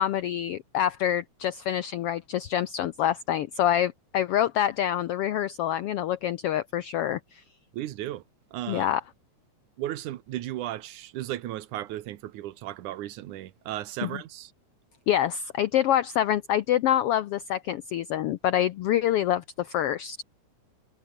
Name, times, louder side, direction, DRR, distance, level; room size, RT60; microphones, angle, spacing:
voice 1, 0.0-7.4 8.7-9.0 14.0-14.1 15.1-20.2, left 11 dB, 80° left, 1.3 m, -26 dB
voice 2, 7.7-8.2 8.5-8.9 9.8-14.5, right 14 dB, 80° right, 2.5 m, -35 dB
omnidirectional pair, 3.5 m